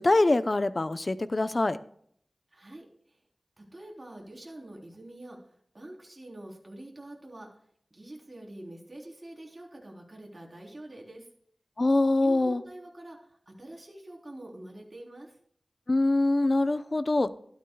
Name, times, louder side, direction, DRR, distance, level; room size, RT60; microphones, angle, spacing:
voice 1, 0.0-1.8 11.8-12.6 15.9-17.3, left 2 dB, 45° left, 12 dB, 0.7 m, -24 dB
voice 2, 2.5-3.2 3.6-7.5 7.9-11.3 12.2-15.4, right 1 dB, 30° right, -1 dB, 3.7 m, -46 dB
13.0 x 12.0 x 2.3 m, 0.63 s
wide cardioid pair, 65°, 0 cm